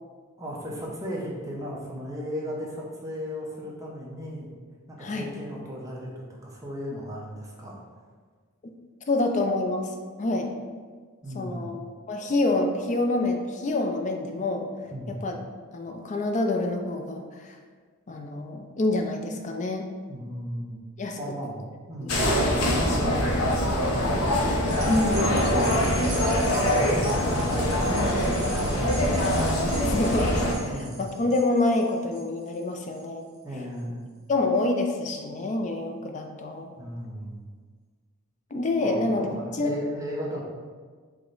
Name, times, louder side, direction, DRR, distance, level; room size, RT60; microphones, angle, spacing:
voice 1, 0.4-4.5 4.9-7.8 11.2-11.6 14.9-15.2 20.1-20.8 21.2-23.2 23.5-24.2 25.1-29.8 30.6-31.0 33.4-34.0 36.8-37.5 38.8-40.5, equal, 15° right, -3 dB, 0.6 m, -36 dB
voice 2, 9.1-10.5 11.3-14.7 15.2-15.3 15.7-17.6 18.1-19.8 21.0-21.2 22.0-22.3 24.9-25.3 29.8-33.3 34.3-36.7 38.5-39.3 39.6-39.7, left 2 dB, 35° left, 3 dB, 0.4 m, -27 dB
sound 1, 22.1-30.5, equal, 70° left, 0.7 m, -23 dB
sound 2, 24.6-33.3 33.8-33.9, right 2 dB, 65° right, 0.9 m, -40 dB
4.8 x 2.1 x 3.8 m, 1.5 s
head